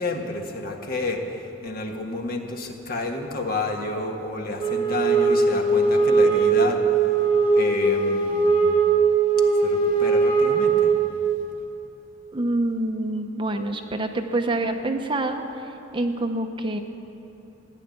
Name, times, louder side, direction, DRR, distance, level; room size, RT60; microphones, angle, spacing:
voice 1, 0.0-6.8 7.5-8.6 9.6-10.9, left 2 dB, 50° left, 2 dB, 1.6 m, -30 dB
Wind instrument woodwind instrument, 4.6-11.4, right 4 dB, 30° left, 1.8 m, -20 dB
voice 2, 12.3-15.6 15.9-16.8, right 2 dB, 25° right, 6 dB, 0.7 m, -26 dB
16.0 x 10.5 x 8.6 m, 2.9 s
head